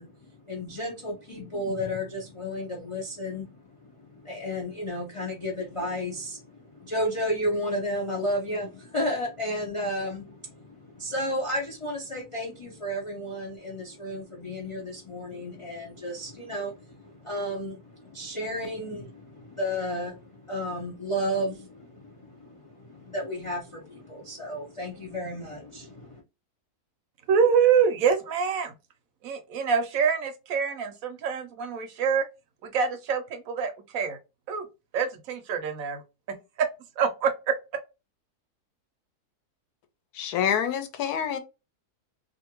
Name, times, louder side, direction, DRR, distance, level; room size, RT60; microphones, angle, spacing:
voice 1, 0.0-26.2, equal, 55° left, 0.3 m, -33 dB
voice 2, 27.3-28.7 29.2-32.2 32.6-34.2 34.5-34.7 34.9-36.0 36.3-36.7 37.0-37.3, right 6 dB, 70° right, 0.9 m, -25 dB
voice 3, 40.1-41.4, left 8 dB, 80° left, 1.1 m, -27 dB
2.6 x 2.5 x 2.8 m
omnidirectional pair, 1.6 m